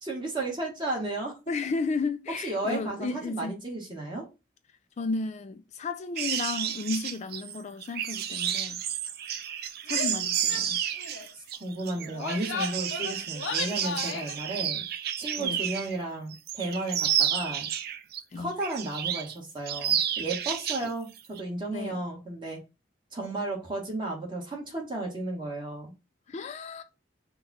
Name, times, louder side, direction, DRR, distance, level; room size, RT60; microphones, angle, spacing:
voice 1, 0.0-1.3 2.4-4.2 11.6-14.8 15.2-17.7 18.3-22.6 23.1-25.9, right 2 dB, 25° right, 1.6 m, -33 dB
voice 2, 1.5-3.5 5.0-8.8 9.9-10.8 15.4-15.6 18.3-18.5 21.7-22.0 26.3-26.8, left 3 dB, 40° left, 0.3 m, -33 dB
sound 1, 6.2-16.0 16.3-18.2 18.6-19.4 19.7-20.9 21.2-21.4, right 9 dB, 55° right, 0.4 m, -31 dB
Female speech woman speaking / Yell, 9.9-10.2 10.5-10.7 11.0-11.3 12.0-14.4, left 5 dB, 85° left, 0.7 m, -35 dB
5.5 x 2.3 x 4.1 m
head